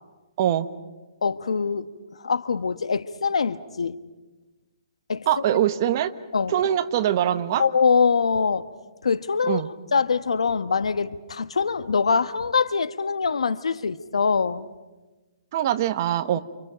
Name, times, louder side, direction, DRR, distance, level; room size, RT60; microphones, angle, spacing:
voice 1, 1.2-1.9 2.2-4.0 5.1-5.3 6.3-6.5 7.6-8.7 9.0-9.6 9.9-14.7, left 5 dB, 90° left, 1.3 m, -23 dB
voice 2, 5.3-6.1 6.5-7.6 9.5-9.7 15.5-16.4, right 11 dB, 35° right, 1.1 m, -23 dB
29.5 x 27.5 x 5.1 m
hypercardioid pair, 165°, 3 cm